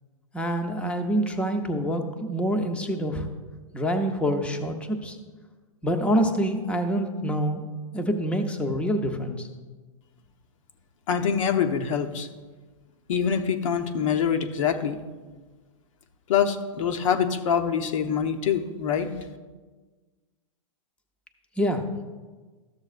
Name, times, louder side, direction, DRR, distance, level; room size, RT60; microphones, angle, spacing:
voice 1, 0.3-3.3 3.7-5.2 5.8-7.6 7.9-9.5 21.6-22.0, equal, 5° left, 5 dB, 0.6 m, -26 dB
voice 2, 11.1-12.3 13.1-15.0 16.3-19.1, left 7 dB, 65° left, 7 dB, 0.8 m, -25 dB
13.0 x 7.0 x 2.5 m, 1.4 s
hypercardioid pair, 130°, 18 cm